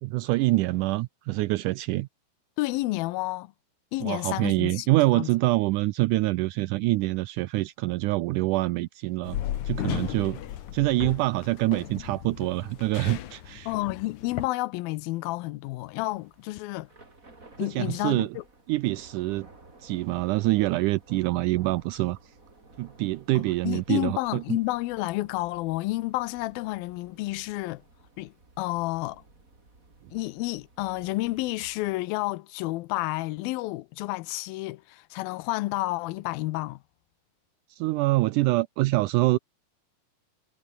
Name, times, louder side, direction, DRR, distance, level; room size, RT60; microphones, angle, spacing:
voice 1, 0.0-2.1 4.0-9.4 9.6-10.4 10.7-13.7 17.6-18.3 18.7-19.5 19.8-22.3 22.8-24.6 37.7-39.4, right 19 dB, 80° right, 1.8 m, -25 dB
voice 2, 2.6-3.5 3.9-5.3 13.7-16.9 17.6-18.4 23.4-27.8 28.2-29.2 30.1-36.8, left 19 dB, 85° left, 2.5 m, -30 dB
sound 1, 9.2-14.5, left 11 dB, 60° left, 2.5 m, -35 dB
Thunder / Rain, 15.8-32.1, right 3 dB, 20° right, 4.4 m, -55 dB
omnidirectional pair, 4.2 m